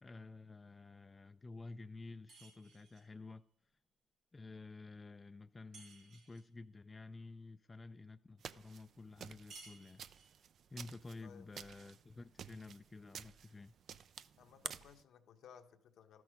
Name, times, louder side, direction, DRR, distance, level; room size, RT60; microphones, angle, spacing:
voice 1, 0.0-3.4 4.3-10.0 10.7-13.7, left 3 dB, 25° left, 0.3 m, -52 dB
sound 1, 2.3-3.1 5.7-6.5 9.5-10.4, right 3 dB, 80° right, 3.1 m, -58 dB
sound 2, 8.4-15.0, right 8 dB, 60° right, 0.4 m, -52 dB
voice 2, 14.4-16.2, left 8 dB, 75° left, 1.0 m, -59 dB
12.5 x 6.1 x 5.0 m
cardioid pair, 90°, 0 cm